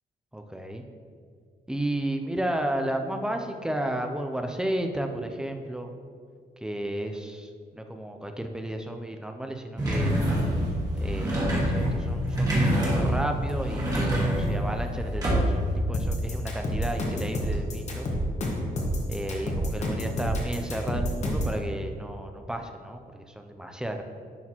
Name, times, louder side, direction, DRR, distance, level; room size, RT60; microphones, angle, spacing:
voice 1, 0.3-0.8 1.7-5.9 6.6-10.2 11.0-18.1 19.1-24.0, right 1 dB, 5° right, 4 dB, 0.3 m, -33 dB
sound 1, 9.8-15.8, equal, 25° right, 1.4 m, -26 dB
sound 2, 15.9-21.6, equal, 45° left, 1.0 m, -28 dB
10.5 x 4.2 x 2.9 m, 2.2 s
wide cardioid pair, 175°, 16 cm